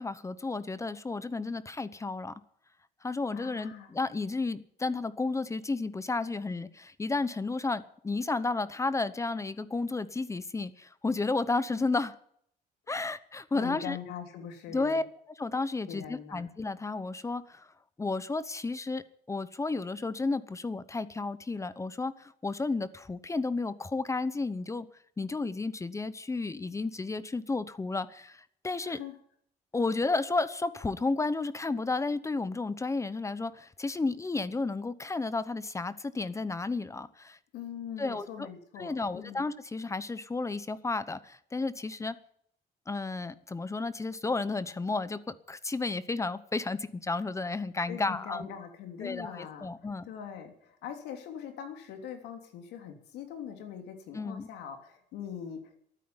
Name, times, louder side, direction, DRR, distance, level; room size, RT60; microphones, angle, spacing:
voice 1, 0.0-2.3 3.0-12.1 12.9-14.0 14.7-15.0 15.4-17.7 18.0-24.9 25.2-29.0 29.7-37.4 38.0-38.5 38.8-42.2 42.9-48.5 49.0-50.1 54.1-54.5, left 3 dB, 15° left, 16 dB, 0.9 m, -32 dB
voice 2, 3.3-3.9 11.7-11.8 13.5-15.0 15.9-16.4 28.8-29.1 37.5-39.4 47.9-49.7 50.0-55.8, left 8 dB, 85° left, 5 dB, 3.2 m, -42 dB
12.5 x 9.7 x 9.8 m, 0.65 s
cardioid pair, 110°, 17 cm